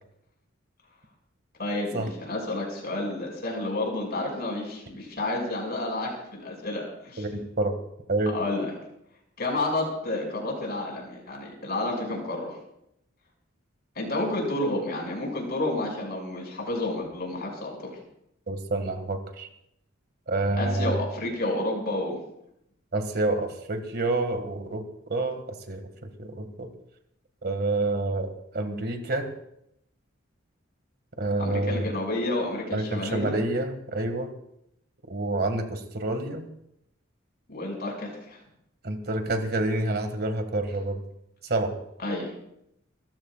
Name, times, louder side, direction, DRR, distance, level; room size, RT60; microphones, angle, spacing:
voice 1, 1.6-7.2 8.3-8.7 9.4-12.5 14.0-17.9 20.6-22.2 31.4-33.3 37.5-38.4 42.0-42.3, left 2 dB, 50° left, 0 dB, 5.9 m, -30 dB
voice 2, 7.2-7.7 8.1-8.4 18.5-19.5 20.3-21.0 22.9-24.8 25.1-26.7 27.4-29.3 31.2-31.9 32.7-34.3 35.1-36.5 38.8-41.0 41.4-41.8, right 2 dB, 50° right, 6 dB, 1.9 m, -28 dB
29.0 x 14.5 x 2.4 m, 0.77 s
head